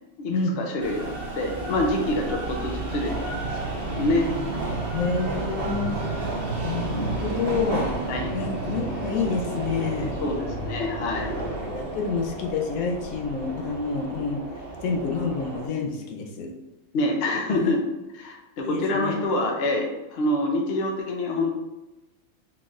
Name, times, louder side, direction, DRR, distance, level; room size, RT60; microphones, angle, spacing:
voice 1, 0.2-4.3 8.1-8.3 10.2-11.4 16.4-16.5 16.9-17.8 18.1-21.5, left 1 dB, 60° left, 1 dB, 0.7 m, -26 dB
sound 1, 0.8-15.7, right 2 dB, 45° right, 1.1 m, -31 dB
voice 2, 4.9-5.9 6.6-7.9 8.3-10.2 11.6-14.4 14.8-16.5 17.5-17.7 18.6-19.2, left 4 dB, 85° left, 2 dB, 1.0 m, -28 dB
3.9 x 3.2 x 2.4 m, 1.0 s
omnidirectional pair, 1.4 m